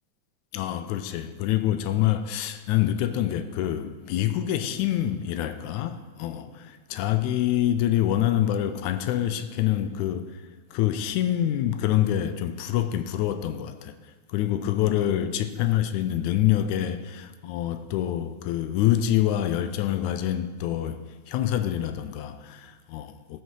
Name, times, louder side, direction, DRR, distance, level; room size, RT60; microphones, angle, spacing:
voice 1, 0.5-10.4 10.7-13.9 14.3-23.4, left 12 dB, 80° left, 1.9 m, -26 dB
13.5 x 6.2 x 4.7 m
omnidirectional pair, 3.5 m